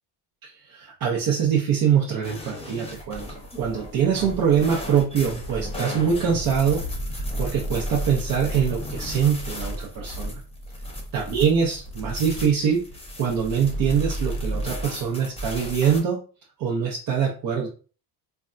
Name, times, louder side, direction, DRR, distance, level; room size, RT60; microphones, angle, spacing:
voice 1, 0.4-3.2 3.5-6.8 7.1-10.4 11.1-12.8 13.2-16.2 16.6-17.7, right 7 dB, 50° right, -1 dB, 0.7 m, -23 dB
sound 1, 2.2-16.0, equal, 15° left, 0.8 m, -33 dB
3.3 x 2.2 x 2.5 m, 0.38 s
cardioid pair, 110°, 46 cm